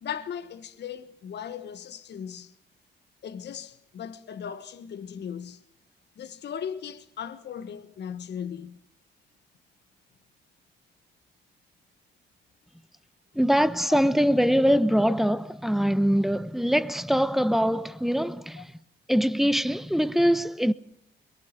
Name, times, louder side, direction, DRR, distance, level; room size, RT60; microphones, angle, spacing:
voice 1, 0.0-2.5 3.2-5.6 6.2-8.8 13.9-14.0 18.6-18.7, left 8 dB, 60° left, 1.4 m, -37 dB
voice 2, 13.3-18.7 19.1-20.7, equal, ahead, 1.1 m, -23 dB
23.0 x 21.5 x 6.8 m
cardioid pair, 90°, 20 cm